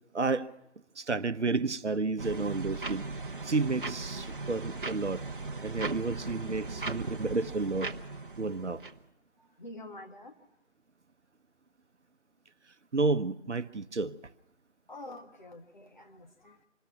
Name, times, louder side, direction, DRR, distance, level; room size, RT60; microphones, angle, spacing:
voice 1, 0.1-0.5 0.9-3.1 3.4-5.2 5.6-7.9 8.4-8.8 12.9-14.2, right 3 dB, 65° right, 12 dB, 1.0 m, -31 dB
sound 1, 2.2-9.0, right 3 dB, 45° right, 1.0 m, -38 dB
voice 2, 9.4-10.5 14.9-16.7, left 1 dB, 40° left, 3 dB, 1.8 m, -47 dB
26.0 x 20.0 x 5.8 m, 0.85 s
figure-of-eight pair, 170°, 37 cm